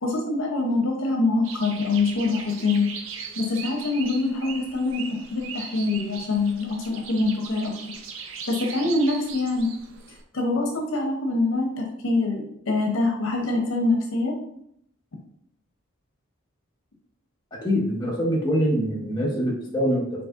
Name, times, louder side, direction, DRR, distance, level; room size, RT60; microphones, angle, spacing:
voice 1, 0.0-2.9 3.4-7.7 8.5-9.7 10.3-14.4, left 3 dB, 75° left, 2 dB, 0.8 m, -24 dB
sound 1, 1.4-10.2, right 6 dB, 70° right, 0.6 m, -39 dB
voice 2, 17.6-20.0, equal, 20° left, -5 dB, 1.4 m, -24 dB
5.2 x 4.0 x 2.5 m, 0.70 s
head